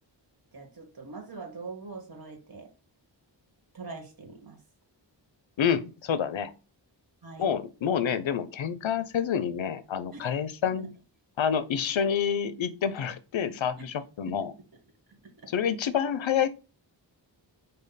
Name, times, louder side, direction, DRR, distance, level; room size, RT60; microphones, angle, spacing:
voice 1, 0.5-2.7 3.7-4.6 7.2-7.5 10.1-10.2 10.7-10.9 13.8-13.9 14.3-14.5 15.1-15.5, right 4 dB, 50° right, 1.4 m, -43 dB
voice 2, 5.6-6.5 7.4-10.9 11.4-14.5 15.5-16.5, left 8 dB, 90° left, 0.6 m, -28 dB
5.2 x 2.2 x 4.0 m
wide cardioid pair, 60°, 45 cm